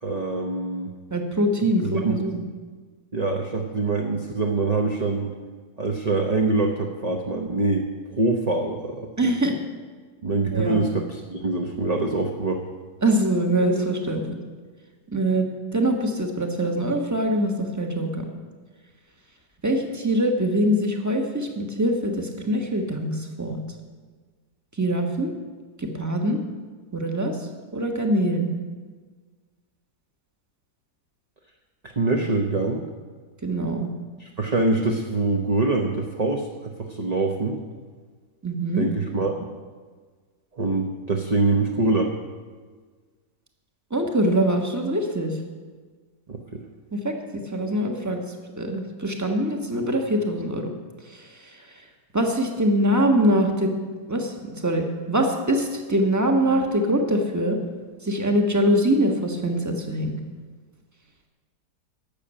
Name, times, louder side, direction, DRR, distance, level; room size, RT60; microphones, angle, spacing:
voice 1, 0.0-0.9 1.8-2.2 3.1-5.3 5.8-7.8 8.1-9.1 10.2-12.6 31.8-32.8 34.2-37.6 38.8-39.5 40.5-42.1 46.3-46.6, right 3 dB, 30° right, 2 dB, 0.7 m, -24 dB
voice 2, 1.1-2.4 9.2-9.6 10.5-10.8 13.0-14.3 15.1-15.5 15.7-18.3 19.6-23.6 24.8-25.3 25.8-26.4 26.9-27.4 27.7-28.5 33.4-33.9 38.4-38.9 43.9-45.3 46.9-48.2 48.6-50.7 52.1-53.7 54.1-57.6 58.0-60.2, right 1 dB, 10° right, 3 dB, 1.2 m, -23 dB
12.0 x 7.1 x 8.8 m, 1.5 s
omnidirectional pair, 1.8 m